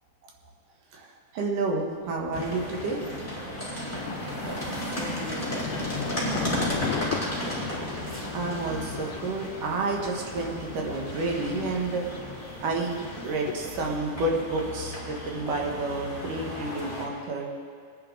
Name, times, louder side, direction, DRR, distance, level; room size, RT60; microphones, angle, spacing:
voice 1, 1.3-3.0 8.3-12.1 12.6-17.5, right 3 dB, 75° right, -1 dB, 3.0 m, -30 dB
sound 1, 1.9-12.5, left 1 dB, 45° right, 5.4 m, -50 dB
sound 2, 2.3-17.0, equal, 5° left, 3.8 m, -34 dB
Thunder, 3.8-13.8, left 9 dB, 75° left, 2.1 m, -38 dB
voice 2, 4.7-7.1, left 3 dB, 55° left, -4 dB, 2.8 m, -40 dB
22.0 x 10.5 x 3.8 m, 2.2 s
omnidirectional pair, 3.9 m